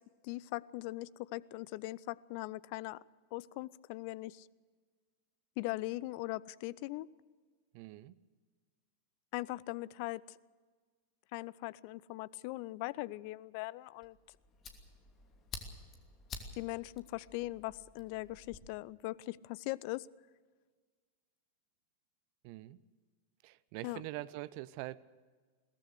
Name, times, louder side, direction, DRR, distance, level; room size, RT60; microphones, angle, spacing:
voice 1, 0.2-3.0 3.3-4.5 5.6-7.1 9.3-10.2 11.3-14.2 16.6-20.1 23.8-24.0, left 19 dB, 45° left, 22 dB, 0.5 m, -40 dB
voice 2, 7.7-8.2 22.4-22.8 23.4-25.0, right 17 dB, 45° right, 17 dB, 0.7 m, -44 dB
Fire, 14.0-18.6, left 4 dB, 30° left, 2.8 m, -50 dB
22.0 x 18.0 x 6.6 m, 1.5 s
figure-of-eight pair, 90°, 0 cm